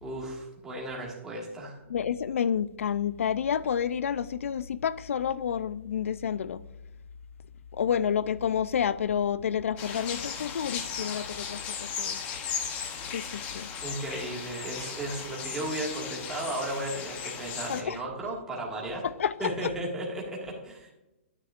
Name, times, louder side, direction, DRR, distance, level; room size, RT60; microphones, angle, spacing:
voice 1, 0.0-1.8 13.8-19.1 19.4-20.9, right 1 dB, 10° right, 1.7 m, -35 dB
voice 2, 1.9-6.6 7.7-12.2 13.1-13.7 17.7-18.0 19.0-19.7, left 8 dB, 80° left, 0.4 m, -29 dB
sound 1, 9.8-17.8, left 7 dB, 20° left, 0.8 m, -36 dB
9.7 x 9.3 x 2.4 m
hypercardioid pair, 160°, 7 cm